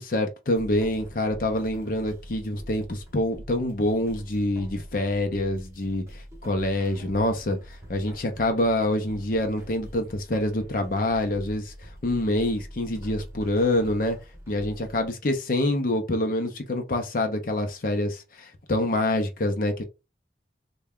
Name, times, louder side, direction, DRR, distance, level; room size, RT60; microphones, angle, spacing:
voice 1, 0.0-14.2 14.5-19.8, left 1 dB, 50° left, 0.6 m, -26 dB
sound 1, 0.6-15.1, equal, 15° right, 0.8 m, -44 dB
3.3 x 2.2 x 3.5 m
head